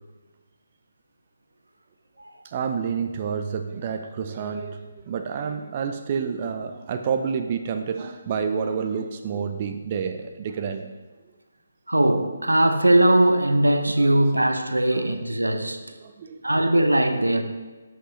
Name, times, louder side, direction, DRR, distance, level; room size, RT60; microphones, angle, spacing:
voice 1, 2.4-11.0 14.9-15.0 16.0-16.8, right 6 dB, 35° right, 6 dB, 0.5 m, -29 dB
voice 2, 11.9-15.8 16.4-17.4, right 1 dB, 85° right, 7 dB, 0.8 m, -20 dB
10.5 x 6.3 x 3.1 m, 1.3 s
figure-of-eight pair, 145°, 0 cm